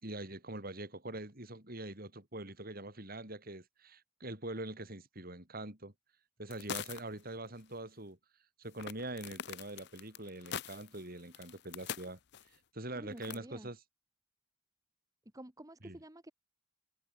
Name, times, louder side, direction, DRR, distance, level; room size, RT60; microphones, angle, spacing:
voice 1, 0.0-5.9 6.4-8.2 8.6-12.2 12.7-13.8 15.8-16.0, right 2 dB, 45° right, 4.6 m, -44 dB
sound 1, 6.5-7.2 7.5-7.6 8.8-12.5 13.2-13.4, left 8 dB, 55° left, 0.7 m, -43 dB
voice 2, 12.9-13.7 15.3-16.3, right 1 dB, 15° right, 1.6 m, -50 dB
head